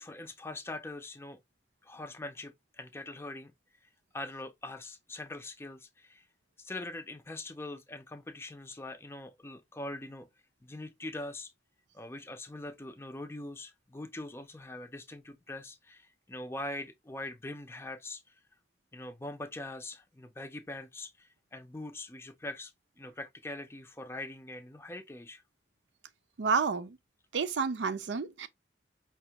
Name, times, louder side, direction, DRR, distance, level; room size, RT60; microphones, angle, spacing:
voice 1, 0.0-1.4 1.8-3.5 3.8-6.3 6.6-10.3 10.6-11.5 11.9-18.4 18.9-25.4, left 2 dB, 15° left, 0.4 m, -43 dB
voice 2, 26.4-27.0 27.3-28.5, right 5 dB, 80° right, 0.5 m, -30 dB
5.1 x 2.3 x 2.8 m
head